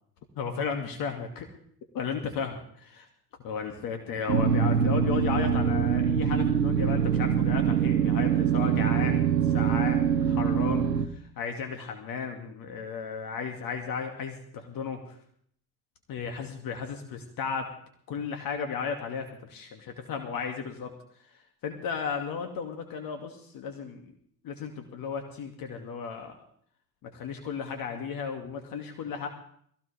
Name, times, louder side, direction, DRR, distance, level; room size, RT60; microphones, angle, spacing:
voice 1, 0.4-1.5 1.9-3.1 3.4-15.2 16.1-17.7 18.1-20.9 21.3-24.1 24.4-26.4 27.0-29.3, left 6 dB, 45° left, 4 dB, 2.4 m, -34 dB
sound 1, 4.3-11.1, right 7 dB, 85° right, 1.1 m, -24 dB
22.0 x 17.0 x 3.5 m, 0.63 s
figure-of-eight pair, 75°, 48 cm